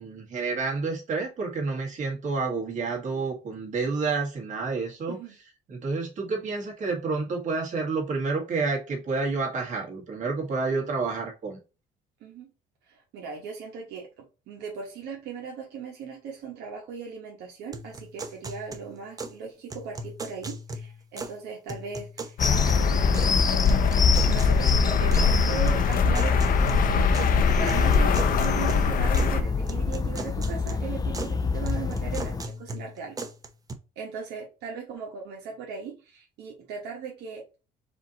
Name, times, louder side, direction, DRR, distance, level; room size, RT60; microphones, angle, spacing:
voice 1, 0.0-5.2 5.7-11.6, right 4 dB, 45° right, 0 dB, 1.9 m, -29 dB
voice 2, 12.2-12.5 12.9-22.4 23.0-23.4 24.3-33.2 34.0-37.6, right 6 dB, 80° right, 0 dB, 1.2 m, -38 dB
sound 1, 17.7-19.4 19.7-21.4 21.7-23.4 23.7-25.3 25.7-27.3 27.7-29.4 29.7-31.4 31.7-33.7, right 2 dB, 20° right, 0.7 m, -39 dB
sound 2, 22.4-29.4, left 5 dB, 60° left, 0.7 m, -22 dB
sound 3, 22.4-32.4, left 5 dB, 20° left, 0.5 m, -28 dB
5.0 x 2.7 x 4.0 m, 0.31 s
cardioid pair, 110°, 17 cm